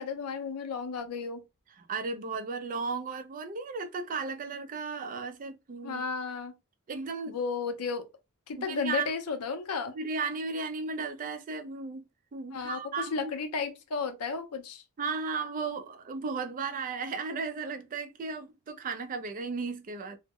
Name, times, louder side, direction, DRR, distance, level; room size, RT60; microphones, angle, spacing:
voice 1, 0.0-1.4 5.8-6.5 7.3-8.1 8.5-9.9 12.5-12.8 13.1-14.8, left 5 dB, 90° left, 0.5 m, -33 dB
voice 2, 1.8-6.0 6.9-7.4 8.6-9.1 9.9-12.0 12.3-13.3 15.0-20.2, right 4 dB, 40° right, 0.4 m, -35 dB
2.0 x 2.0 x 3.5 m
head